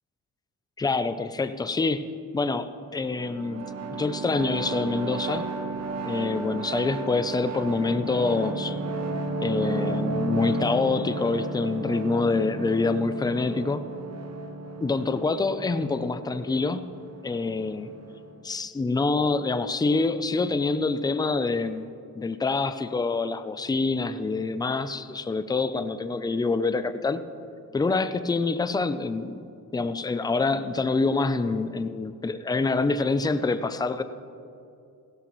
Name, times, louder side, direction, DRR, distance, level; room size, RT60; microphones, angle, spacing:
voice 1, 0.8-5.5 6.0-8.8 9.4-13.8 14.8-16.9 17.2-17.9 18.4-21.9 22.2-27.2 27.7-34.0, left 3 dB, 10° left, 11 dB, 0.4 m, -26 dB
sound 1, 3.0-18.4, right 3 dB, 45° right, 1.0 m, -33 dB
16.5 x 16.0 x 3.1 m, 2.5 s
cardioid pair, 135°, 36 cm